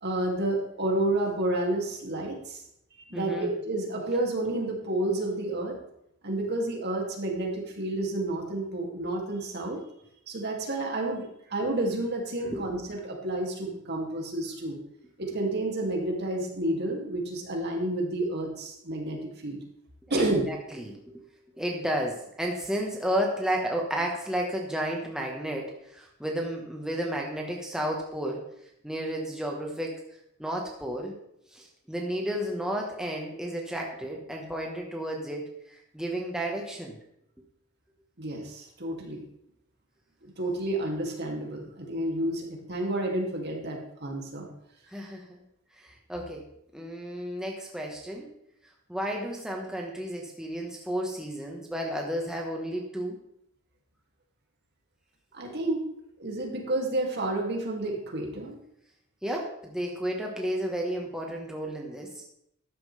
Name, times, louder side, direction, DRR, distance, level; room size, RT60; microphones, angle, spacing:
voice 1, 0.0-2.6 3.1-5.8 6.2-9.8 10.3-14.8 15.2-19.6 20.1-20.5 38.2-39.2 40.2-44.5 55.3-55.8 56.2-58.6, right 1 dB, 50° right, 0 dB, 2.6 m, -30 dB
voice 2, 3.1-3.5 11.6-11.7 12.4-12.7 20.1-21.0 21.6-28.4 28.8-29.9 30.4-31.1 31.5-37.0 44.9-45.4 45.8-46.4 46.7-48.3 48.9-53.1 59.2-62.2, equal, 5° right, -1 dB, 1.3 m, -32 dB
13.0 x 10.5 x 3.4 m, 0.77 s
head